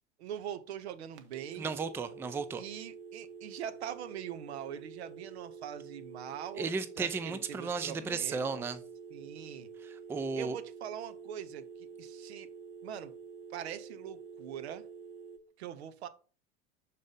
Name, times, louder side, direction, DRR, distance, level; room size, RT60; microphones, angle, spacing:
voice 1, 0.2-1.7 2.6-8.6 9.1-9.7 10.3-12.5 12.8-13.1 13.5-14.9 15.6-16.1, right 9 dB, 70° right, 0.7 m, -43 dB
sound 1, 1.2-15.4, right 6 dB, 45° right, 0.9 m, -48 dB
voice 2, 1.6-2.6 6.6-8.8 9.8-10.6, right 4 dB, 5° right, 0.4 m, -34 dB
6.5 x 4.1 x 3.8 m
figure-of-eight pair, 75°, 34 cm